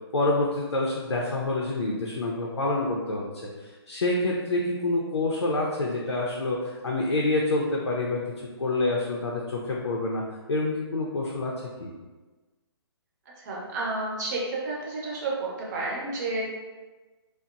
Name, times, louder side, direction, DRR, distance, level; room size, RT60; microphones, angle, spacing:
voice 1, 0.1-3.2 3.6-8.2 8.6-10.2 10.5-11.5 11.8-11.9, left 2 dB, 80° left, -2 dB, 0.4 m, -27 dB
voice 2, 13.4-16.4, right 2 dB, 40° right, -4 dB, 0.7 m, -31 dB
2.8 x 2.0 x 2.5 m, 1.3 s
figure-of-eight pair, 135°, 14 cm